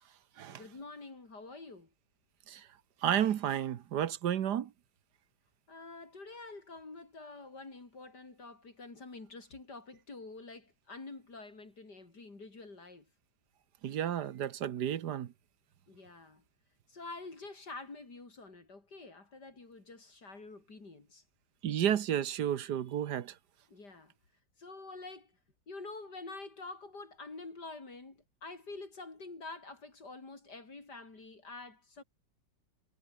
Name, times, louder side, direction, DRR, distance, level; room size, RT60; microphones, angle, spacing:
voice 1, 0.5-1.9 5.7-13.1 15.9-16.4 16.9-21.2 23.7-24.1 24.6-25.3 25.7-32.0, left 3 dB, 60° left, 4.8 m, -47 dB
voice 2, 3.0-4.7 13.8-15.3 21.6-23.3, right 10 dB, 65° right, 1.5 m, -32 dB
omnidirectional pair, 2.0 m